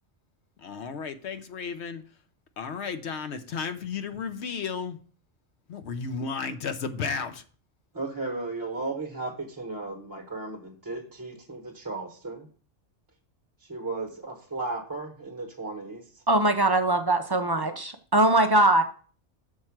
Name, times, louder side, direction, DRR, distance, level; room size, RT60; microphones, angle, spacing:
voice 1, 0.6-2.0 2.6-5.0 5.7-7.4, left 5 dB, 70° left, 1.0 m, -33 dB
voice 2, 7.9-12.5 13.6-16.2 17.5-17.8, right 3 dB, 20° right, 0.9 m, -35 dB
voice 3, 16.3-18.8, right 2 dB, 40° right, 0.3 m, -21 dB
6.5 x 4.4 x 5.8 m
omnidirectional pair, 1.2 m